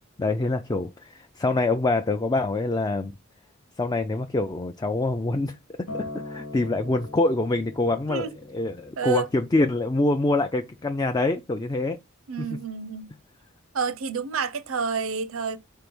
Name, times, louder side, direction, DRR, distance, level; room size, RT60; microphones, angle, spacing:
voice 1, 0.2-3.1 3.8-5.6 5.9-12.0 12.4-12.5, left 2 dB, 20° left, 0.4 m, -25 dB
Acoustic guitar, 5.9-10.2 11.0-11.1, left 2 dB, 90° left, 1.4 m, -41 dB
voice 2, 9.0-9.3 12.3-13.1 13.7-15.6, right 6 dB, 90° right, 0.7 m, -29 dB
4.6 x 4.1 x 5.3 m
head